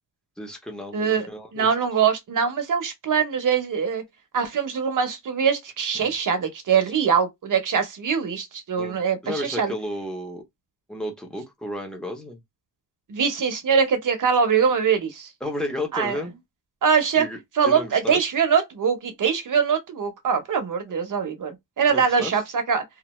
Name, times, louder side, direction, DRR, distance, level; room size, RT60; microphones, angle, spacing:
voice 1, 0.4-1.7 5.9-6.1 8.8-10.4 10.9-12.4 15.4-16.3 17.2-17.4 17.6-18.3 21.9-22.4, left 1 dB, ahead, 0.6 m, -33 dB
voice 2, 0.9-1.3 1.5-4.0 4.3-9.7 13.1-15.3 15.9-16.2 16.8-17.3 17.6-22.8, right 6 dB, 45° right, 0.7 m, -23 dB
2.3 x 2.2 x 2.9 m
wide cardioid pair, 175°, 44 cm